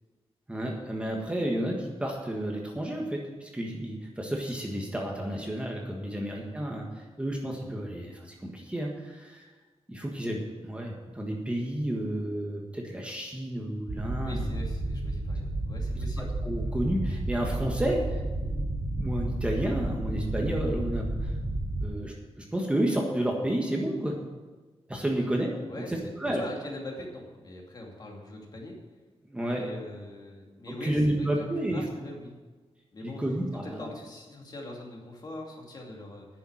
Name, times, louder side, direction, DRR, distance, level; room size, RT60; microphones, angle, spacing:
voice 1, 0.5-9.5 9.9-14.4 16.2-18.2 19.0-21.3 21.8-24.2 24.9-25.5 25.9-26.4 29.3-29.7 30.7-31.8 33.0-33.9, right 1 dB, 10° right, 0 dB, 1.5 m, -31 dB
sound 1, 13.9-21.9, right 1 dB, 90° right, 2.9 m, -31 dB
voice 2, 14.2-16.3 25.7-28.8 29.4-31.4 31.7-32.3 32.9-33.2 33.6-36.3, left 1 dB, 40° left, 0 dB, 2.5 m, -42 dB
10.0 x 7.0 x 8.9 m, 1.3 s
wide cardioid pair, 140°, 11 cm